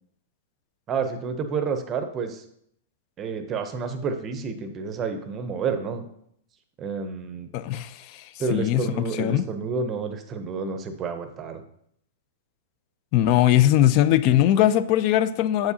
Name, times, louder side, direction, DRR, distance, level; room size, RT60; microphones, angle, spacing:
voice 1, 0.9-2.4 3.2-6.0 6.8-7.5 8.4-11.6, right 5 dB, 25° right, 8 dB, 0.6 m, -29 dB
voice 2, 7.5-8.2 8.5-8.9 9.1-9.4 13.1-15.7, left 12 dB, 40° left, 15 dB, 0.3 m, -20 dB
7.5 x 4.7 x 2.8 m, 0.71 s
hypercardioid pair, 150°, 0 cm